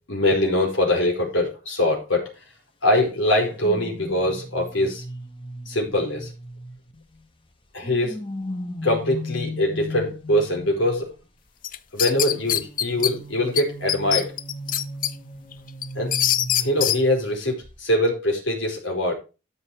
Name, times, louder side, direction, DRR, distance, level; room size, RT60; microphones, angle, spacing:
voice 1, 0.1-2.4 2.8-5.0 5.7-6.3 7.7-8.2 8.8-11.1 11.9-14.4 15.9-16.2 16.5-19.1, left 1 dB, 80° left, 4.7 m, -23 dB
sound 1, 3.6-7.2 7.8-11.1 12.1-17.3 17.6-17.9, left 1 dB, 25° left, 1.4 m, -36 dB
sound 2, 11.6-13.1 13.6-13.7 13.9-15.1 15.5-17.0, left 11 dB, 45° left, 0.6 m, -23 dB
13.0 x 5.5 x 4.8 m
head